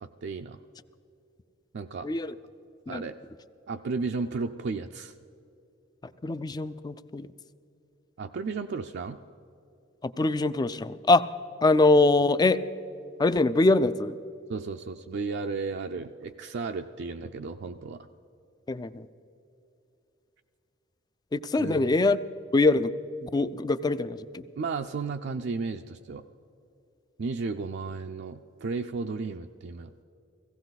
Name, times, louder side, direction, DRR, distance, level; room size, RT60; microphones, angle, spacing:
voice 1, 0.0-0.6 1.7-2.1 2.9-3.2 3.7-5.1 8.2-9.2 14.5-18.1 21.6-21.9 24.6-26.2 27.2-30.0, right 4 dB, 60° right, 5 dB, 0.4 m, -34 dB
voice 2, 2.0-2.3 2.9-3.0 6.2-7.3 10.0-11.2 11.6-12.6 13.2-14.2 18.7-19.1 21.3-22.2 22.5-22.9 23.2-24.5, left 2 dB, 20° left, 14 dB, 0.4 m, -23 dB
17.0 x 16.0 x 4.0 m, 2.8 s
head